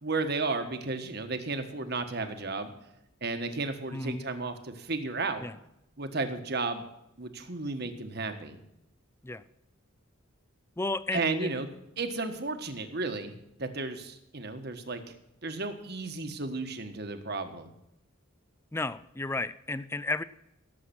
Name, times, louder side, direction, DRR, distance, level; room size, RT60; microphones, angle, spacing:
voice 1, 0.0-2.7 3.2-5.4 6.0-6.8 7.2-8.6 11.1-11.7 12.0-15.2 15.4-17.7, right 3 dB, 50° right, 7 dB, 1.4 m, -33 dB
voice 2, 3.9-4.3 5.4-5.6 9.2-9.4 10.8-11.6 18.7-20.2, left 2 dB, 10° left, 16 dB, 0.4 m, -33 dB
17.0 x 7.7 x 6.0 m, 0.83 s
head